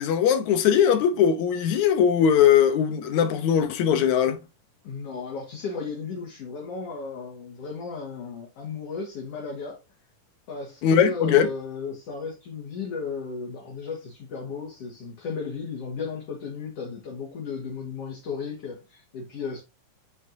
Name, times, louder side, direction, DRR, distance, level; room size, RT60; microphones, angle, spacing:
voice 1, 0.0-4.4 10.8-11.5, left 8 dB, 70° left, 2.1 m, -20 dB
voice 2, 4.8-9.8 10.5-19.6, left 5 dB, 50° left, 2.5 m, -34 dB
8.8 x 6.3 x 2.7 m
omnidirectional pair, 3.9 m